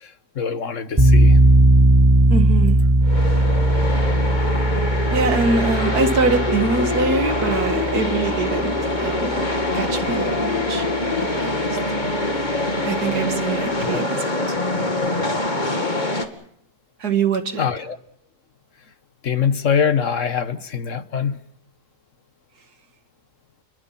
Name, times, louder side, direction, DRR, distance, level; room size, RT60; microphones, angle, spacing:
voice 1, 0.4-1.4 12.0-12.1 13.9-14.0 17.6-18.0 19.2-21.4, left 7 dB, 55° left, 1.5 m, -23 dB
sound 1, 1.0-9.8, right 1 dB, 20° right, 1.9 m, -18 dB
voice 2, 2.3-2.8 5.1-10.9 11.2-11.6 12.8-14.6 17.0-17.7, right 4 dB, 80° right, 2.3 m, -24 dB
sound 2, 3.0-16.3, left 2 dB, 30° left, 2.4 m, -24 dB
29.5 x 22.5 x 5.8 m
omnidirectional pair, 1.6 m